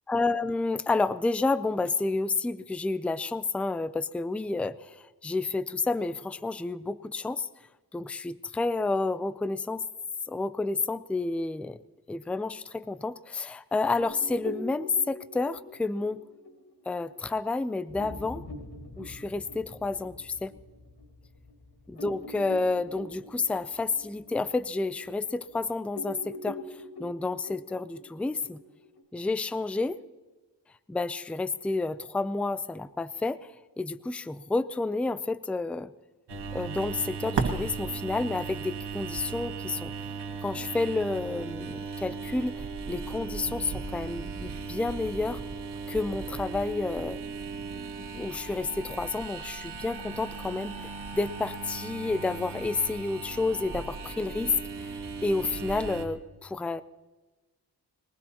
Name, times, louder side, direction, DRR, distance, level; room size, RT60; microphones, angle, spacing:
voice 1, 0.1-7.5 7.9-9.8 10.3-11.8 12.1-16.2 16.9-18.4 19.0-20.5 21.9-28.6 29.1-30.0 30.9-33.5 33.8-35.9 36.5-39.9 40.4-45.4 45.9-47.2 48.1-54.9 55.2-56.8, left 3 dB, 5° left, 14 dB, 0.4 m, -30 dB
sound 1, 14.0-21.0 21.5-21.6 21.9-25.6 25.9-29.0, left 2 dB, 80° left, 3.7 m, -44 dB
sound 2, 17.9-25.8 26.2-26.3, left 2 dB, 45° left, 2.0 m, -49 dB
sound 3, 36.3-56.0, right 5 dB, 85° right, 1.7 m, -37 dB
22.0 x 20.0 x 2.9 m, 1.2 s
wide cardioid pair, 115°, 40 cm